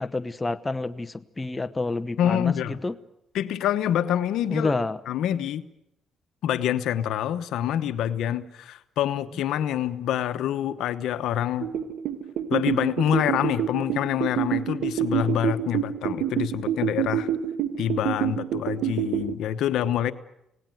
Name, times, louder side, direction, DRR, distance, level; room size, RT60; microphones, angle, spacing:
voice 1, 0.0-2.9 4.5-5.0, left 3 dB, 20° left, 11 dB, 1.0 m, -29 dB
voice 2, 2.2-2.8 3.3-4.7 5.1-5.6 6.4-11.7 12.5-17.3 17.8-20.1, left 10 dB, 80° left, 11 dB, 1.1 m, -26 dB
sound 1, 11.6-19.3, right 10 dB, 85° right, 1.5 m, -27 dB
26.5 x 18.5 x 9.2 m, 0.85 s
cardioid pair, 90°, 0 cm